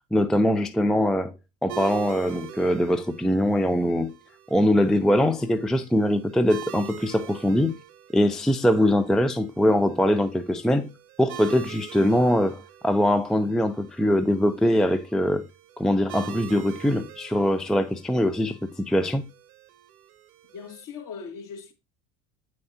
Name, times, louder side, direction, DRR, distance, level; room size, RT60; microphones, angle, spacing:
voice 1, 0.1-1.3 1.6-4.1 4.5-7.8 8.1-10.9 11.2-15.5 15.8-19.2, equal, ahead, 0.5 m, -22 dB
sound 1, 1.7-20.8, right 10 dB, 75° right, 1.2 m, -44 dB
voice 2, 20.5-21.7, left 6 dB, 45° left, 2.4 m, -39 dB
8.4 x 6.3 x 2.8 m
hypercardioid pair, 65°, 43 cm